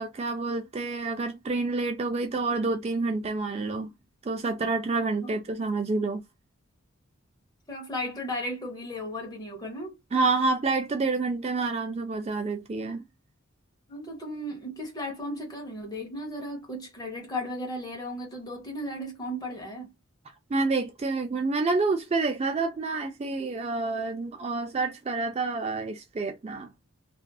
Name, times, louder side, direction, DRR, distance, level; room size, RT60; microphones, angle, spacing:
voice 1, 0.0-3.9 4.2-6.2 10.1-13.0 20.5-26.7, right 3 dB, 30° right, 0.3 m, -28 dB
voice 2, 7.7-10.0 13.9-19.9, left 1 dB, 20° left, 0.8 m, -35 dB
2.5 x 2.4 x 2.2 m
head